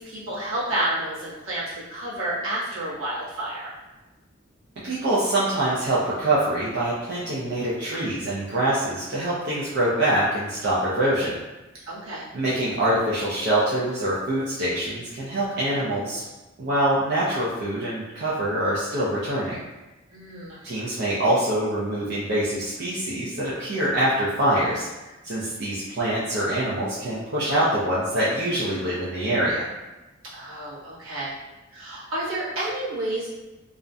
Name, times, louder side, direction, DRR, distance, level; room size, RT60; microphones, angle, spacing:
voice 1, 0.0-3.7 11.9-12.2 20.1-20.6 30.3-31.3 31.7-33.3, right 1 dB, 75° right, -8 dB, 0.9 m, -30 dB
voice 2, 4.8-11.4 12.3-16.2 16.6-19.6 20.6-24.9 25.2-29.6, right 1 dB, 55° right, -8 dB, 0.4 m, -24 dB
2.4 x 2.0 x 2.5 m, 1.1 s
head